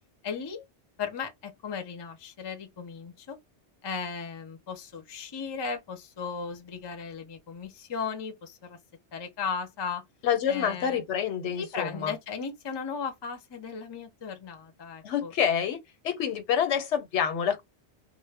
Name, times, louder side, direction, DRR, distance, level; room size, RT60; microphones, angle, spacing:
voice 1, 0.2-0.6 1.0-3.4 3.8-8.8 9.1-10.0 10.5-11.0 11.5-15.3, left 5 dB, 35° left, 0.4 m, -36 dB
voice 2, 10.2-12.1 15.0-15.8 16.0-17.6, left 8 dB, 90° left, 1.0 m, -27 dB
2.1 x 2.0 x 3.2 m
omnidirectional pair, 1.1 m